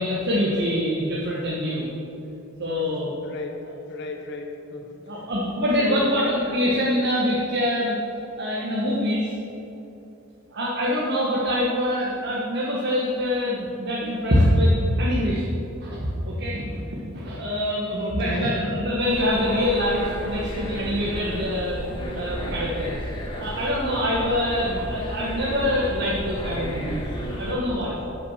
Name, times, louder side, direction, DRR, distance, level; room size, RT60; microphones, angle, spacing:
voice 1, 0.0-1.9 2.6-3.1 5.0-8.0 8.4-9.3 10.5-16.0 16.2-21.8 22.1-23.0 23.4-27.0 27.4-28.0, left 1 dB, 55° right, -5 dB, 1.5 m, -24 dB
voice 2, 2.7-3.6 3.9-5.0 5.8-6.1 18.0-18.6, left 2 dB, 55° left, 3 dB, 1.1 m, -34 dB
sound 1, 19.1-27.5, equal, 25° left, 2.0 m, -33 dB
13.0 x 6.3 x 5.7 m, 2.9 s
head